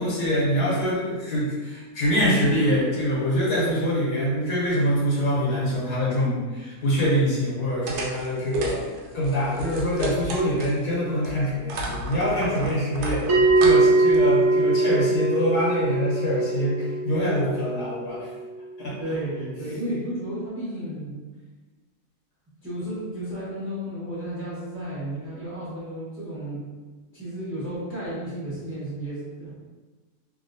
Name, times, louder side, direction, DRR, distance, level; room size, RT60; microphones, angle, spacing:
voice 1, 0.0-8.9 9.1-18.3 18.8-19.0, equal, 90° left, -7 dB, 1.6 m, -24 dB
sound 1, 7.9-10.9 11.2-14.4, right 2 dB, 90° right, 1.1 m, -32 dB
Bell, 13.3-18.3, right 3 dB, 65° right, 1.0 m, -21 dB
voice 2, 19.0-21.2 22.6-26.6 27.1-29.5, right 1 dB, 10° right, -10 dB, 0.8 m, -32 dB
3.1 x 2.8 x 2.6 m, 1.3 s
omnidirectional pair, 1.6 m